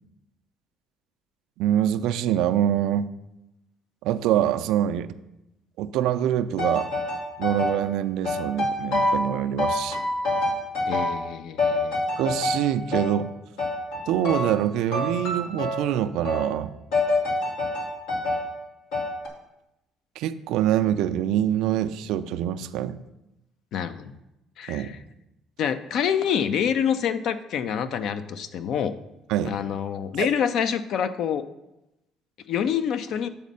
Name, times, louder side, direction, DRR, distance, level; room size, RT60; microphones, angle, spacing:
voice 1, 1.6-3.1 4.0-5.1 5.8-6.9 7.4-10.0 12.2-13.3 14.1-16.7 20.2-23.0 24.7-25.0 29.3-29.6 30.2-30.3, right 11 dB, 80° right, 11 dB, 0.3 m, -25 dB
sound 1, 6.6-7.8 8.2-9.3 9.6-11.3 11.6-13.2 13.6-14.6 14.9-15.9 16.2-16.5 16.9-18.5 18.9-19.3, left 2 dB, 85° left, 1.4 m, -27 dB
voice 2, 10.9-12.0 23.7-24.1 24.6-25.0 25.6-28.9 29.4-31.4 32.5-33.3, left 8 dB, 65° left, 11 dB, 0.5 m, -26 dB
7.2 x 4.2 x 5.4 m, 0.91 s
supercardioid pair, 80°, 0 cm